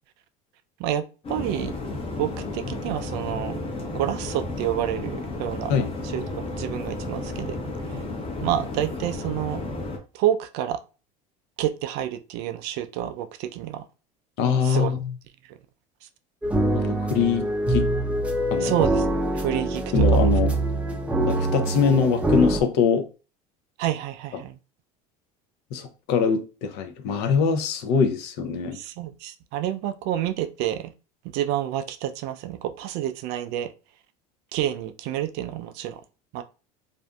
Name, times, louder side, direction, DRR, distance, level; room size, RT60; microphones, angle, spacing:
voice 1, 0.8-1.8 2.2-3.6 3.9-5.7 6.1-7.6 8.4-9.6 10.1-10.8 11.6-13.8 14.6-15.0 18.6-19.1 19.3-19.8 20.1-20.3 23.8-24.5 28.7-30.9 31.3-33.7 34.5-36.0 36.3-36.4, right 12 dB, 60° right, 0.4 m, -28 dB
sound 1, 1.2-10.0, left 2 dB, 30° left, 0.8 m, -32 dB
voice 2, 14.4-15.0 16.7-17.9 18.5-18.7 19.9-20.5 21.2-23.1 25.7-28.8, left 6 dB, 60° left, 0.6 m, -23 dB
sound 2, 16.4-22.6, right 2 dB, 5° right, 0.5 m, -23 dB
2.5 x 2.5 x 2.2 m
supercardioid pair, 95°, 19 cm